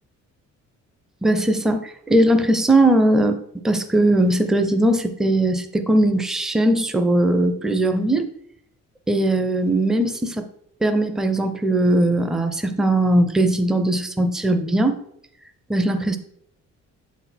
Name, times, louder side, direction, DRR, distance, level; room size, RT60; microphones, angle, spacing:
voice 1, 1.2-8.3 9.1-10.5 10.8-15.0 15.7-16.2, right 1 dB, ahead, 8 dB, 0.5 m, -19 dB
7.5 x 4.1 x 4.3 m, 0.71 s
cardioid pair, 120°, 30 cm